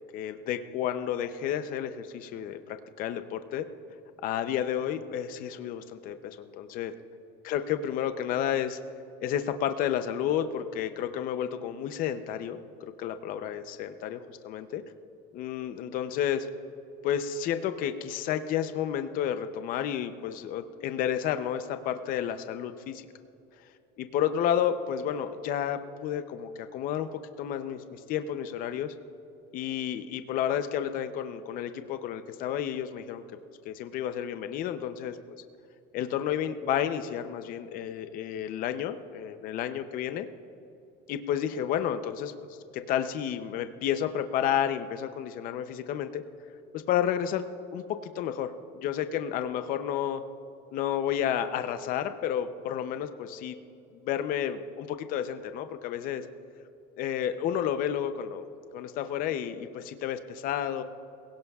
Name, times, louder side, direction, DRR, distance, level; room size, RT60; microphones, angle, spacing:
voice 1, 0.1-3.7 4.2-6.9 7.4-8.8 9.2-14.8 15.3-16.5 17.0-23.0 24.0-27.1 27.4-28.9 29.5-33.2 33.6-35.2 35.9-40.3 41.1-42.3 42.7-46.2 46.7-47.5 47.7-50.2 50.7-53.6 54.0-56.2 57.0-58.5 58.7-60.8, left 9 dB, 40° left, 9 dB, 0.6 m, -31 dB
24.5 x 17.0 x 2.4 m, 2.8 s
cardioid pair, 170°, 21 cm